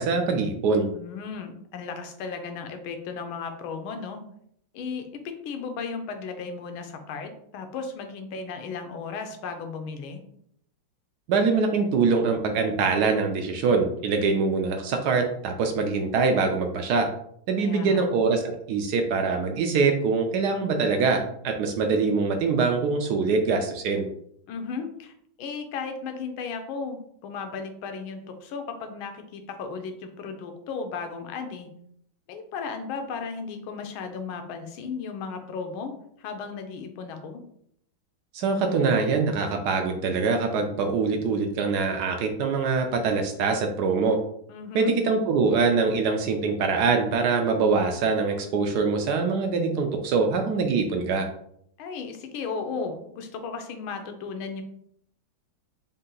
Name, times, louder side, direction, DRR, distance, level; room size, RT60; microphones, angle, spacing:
voice 1, 0.0-0.9 11.3-17.1 17.5-24.1 38.3-44.2 44.7-51.3, right 4 dB, 75° right, 4 dB, 1.0 m, -24 dB
voice 2, 0.9-4.2 4.7-10.2 17.6-18.0 24.5-31.7 32.3-35.9 36.2-37.4 44.5-45.0 51.8-54.6, left 5 dB, 90° left, 6 dB, 1.5 m, -35 dB
4.3 x 2.7 x 3.8 m, 0.70 s
omnidirectional pair, 2.2 m